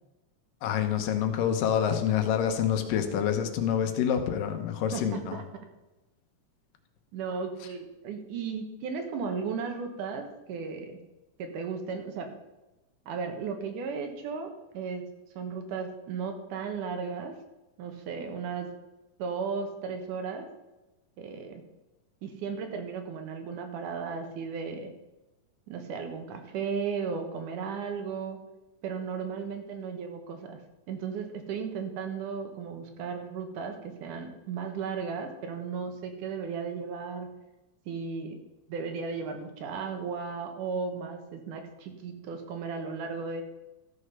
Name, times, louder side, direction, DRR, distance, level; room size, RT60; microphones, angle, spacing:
voice 1, 0.6-5.4, left 9 dB, 85° left, 7 dB, 2.6 m, -27 dB
voice 2, 4.9-5.4 7.1-11.0 11.4-12.3 13.1-15.1 15.4-17.3 17.8-18.7 19.2-20.5 21.2-21.6 22.2-24.9 25.7-28.4 28.8-30.6 30.9-37.3 37.9-38.4 38.7-43.4, right 5 dB, 70° right, 5 dB, 2.6 m, -35 dB
14.0 x 6.6 x 5.5 m, 1.0 s
omnidirectional pair, 3.9 m